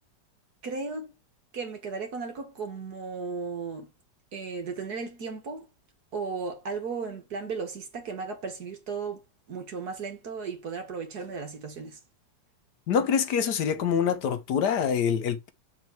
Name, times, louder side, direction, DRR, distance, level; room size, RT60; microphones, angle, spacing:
voice 1, 0.6-1.1 1.5-3.9 4.3-5.7 6.1-9.2 9.5-12.0, right 5 dB, 60° right, 2.0 m, -35 dB
voice 2, 12.9-15.5, left 7 dB, 70° left, 1.3 m, -25 dB
7.2 x 3.7 x 4.6 m
omnidirectional pair, 2.0 m